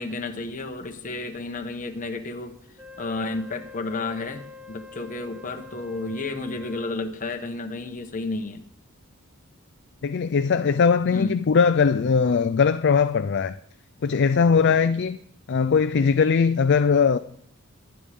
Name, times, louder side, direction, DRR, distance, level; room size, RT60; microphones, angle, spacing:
voice 1, 0.0-2.6 3.0-8.6 11.1-11.4, left 3 dB, 35° left, 1.2 m, -32 dB
Wind instrument woodwind instrument, 2.8-7.1, left 4 dB, 5° right, 0.4 m, -45 dB
voice 2, 10.0-13.6 14.0-15.2 15.5-17.2, left 5 dB, 55° left, 0.4 m, -20 dB
21.5 x 9.9 x 3.6 m
head